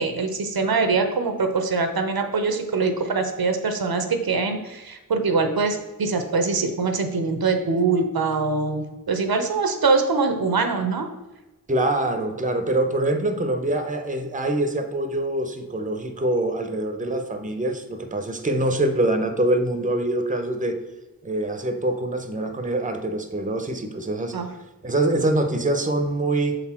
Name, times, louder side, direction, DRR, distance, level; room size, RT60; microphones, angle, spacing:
voice 1, 0.0-11.1 24.3-24.5, right 4 dB, 85° right, 6 dB, 0.7 m, -23 dB
voice 2, 11.7-20.8 21.2-24.4 24.8-26.6, right 1 dB, 20° right, 6 dB, 0.7 m, -24 dB
6.5 x 4.1 x 4.3 m, 1.1 s
wide cardioid pair, 65°, 35 cm